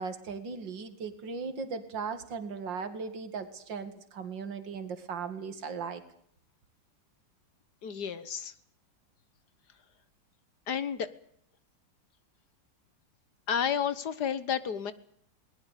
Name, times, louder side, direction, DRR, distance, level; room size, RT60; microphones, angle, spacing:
voice 1, 0.0-6.0, right 5 dB, 70° right, 10 dB, 2.8 m, -37 dB
voice 2, 7.8-8.5 10.7-11.1 13.5-14.9, left 8 dB, 60° left, 15 dB, 1.7 m, -31 dB
21.5 x 20.0 x 8.4 m, 0.65 s
omnidirectional pair, 2.1 m